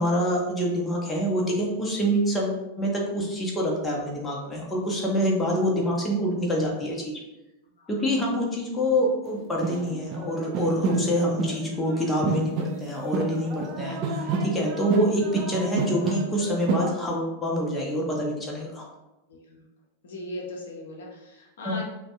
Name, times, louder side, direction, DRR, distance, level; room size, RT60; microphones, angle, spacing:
voice 1, 0.0-7.1 7.9-18.9 21.6-21.8, equal, 10° left, -2 dB, 0.6 m, -26 dB
sound 1, 9.2-9.3 9.6-11.6 11.9-16.9, right 3 dB, 40° right, 0.4 m, -29 dB
voice 2, 19.3-19.6 20.0-21.8, left 1 dB, 60° left, -1 dB, 0.6 m, -38 dB
3.2 x 2.1 x 2.7 m, 0.98 s
figure-of-eight pair, 90°, 0 cm